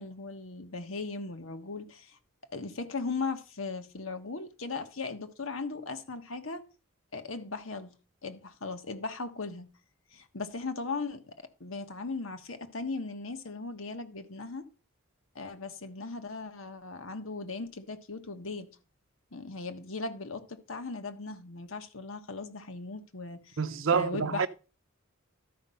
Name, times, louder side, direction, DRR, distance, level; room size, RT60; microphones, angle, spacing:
voice 1, 0.0-2.2 2.5-6.6 7.1-7.9 8.2-9.7 10.1-11.3 11.6-14.7 15.3-18.7 19.3-23.6 23.9-24.5, left 3 dB, 75° left, 1.3 m, -38 dB
voice 2, 23.6-24.5, right 6 dB, 70° right, 0.6 m, -27 dB
12.5 x 5.2 x 5.6 m
head